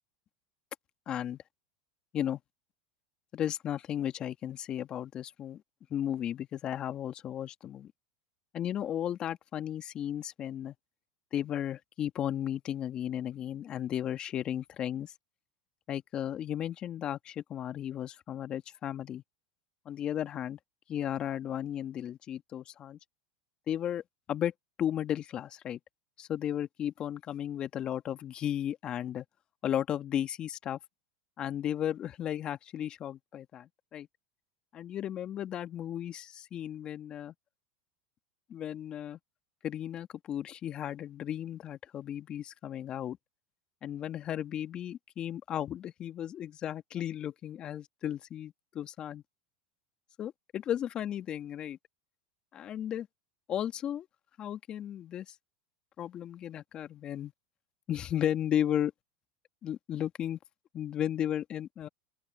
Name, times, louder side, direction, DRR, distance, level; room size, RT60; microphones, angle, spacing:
voice 1, 1.1-1.4 2.1-2.4 3.3-5.6 5.9-7.9 8.5-10.8 11.3-15.1 15.9-19.2 19.9-20.6 20.9-23.0 23.7-24.0 24.3-24.5 24.8-25.8 26.2-29.3 29.6-30.8 31.4-34.1 34.7-37.3 38.5-39.2 39.6-43.2 43.8-49.2 50.2-51.8 52.5-53.1 53.5-54.1 54.4-55.3 56.0-57.3 57.9-58.9 59.6-60.4 60.7-61.9, left 10 dB, 40° left, 1.9 m, -34 dB
open air
hypercardioid pair, 100°, 3 cm